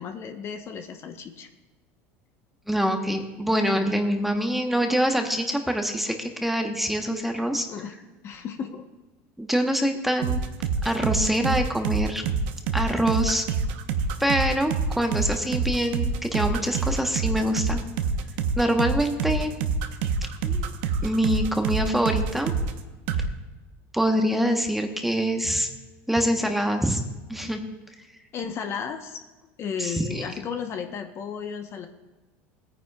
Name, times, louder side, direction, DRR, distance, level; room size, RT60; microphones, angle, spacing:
voice 1, 0.0-1.5 7.7-7.9 8.2-8.9 28.3-29.2 29.6-31.9, left 7 dB, 40° left, 6 dB, 0.9 m, -34 dB
voice 2, 2.7-7.7 9.4-10.4 10.8-12.2 12.7-13.4 14.2-17.8 18.6-19.6 20.4-20.7 21.0-22.5 23.9-25.7 26.1-27.0 27.3-27.6 29.8-30.3, equal, ahead, 4 dB, 1.0 m, -25 dB
sound 1, 10.2-22.8 23.1-23.3, right 5 dB, 70° right, 0.9 m, -26 dB
19.0 x 9.5 x 2.3 m, 1.2 s
supercardioid pair, 125°, 7 cm